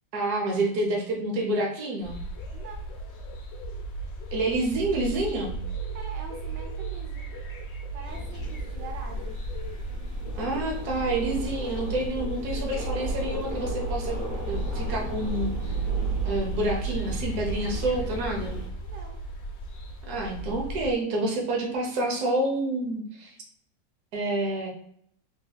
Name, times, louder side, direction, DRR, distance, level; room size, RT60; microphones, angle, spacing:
voice 1, 0.1-2.2 4.3-5.5 10.3-14.2 14.5-15.7 16.0-18.5 20.1-23.3 24.1-24.7, right 2 dB, 65° right, 0 dB, 1.3 m, -28 dB
sound 1, 2.0-20.9, right 3 dB, 70° left, 0.6 m, -35 dB
voice 2, 2.5-2.8 5.9-7.3 7.9-9.4 18.8-19.2, right 5 dB, 80° right, 0 dB, 1.4 m, -43 dB
sound 2, 8.1-18.7, right 1 dB, 20° left, 0.4 m, -34 dB
3.5 x 3.3 x 2.3 m, 0.68 s
omnidirectional pair, 1.9 m